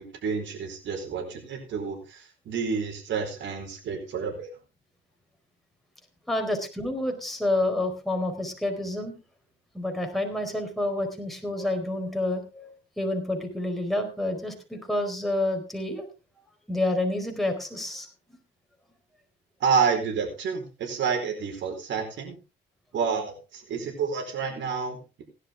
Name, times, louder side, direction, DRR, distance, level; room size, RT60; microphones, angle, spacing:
voice 1, 0.0-4.5 19.6-22.4 22.9-25.2, right 6 dB, 70° right, 2 dB, 4.5 m, -29 dB
voice 2, 6.3-9.1 9.7-16.1 16.7-18.1, left 1 dB, ahead, 2 dB, 4.5 m, -29 dB
17.0 x 11.5 x 3.6 m, 0.31 s
cardioid pair, 90°, 20 cm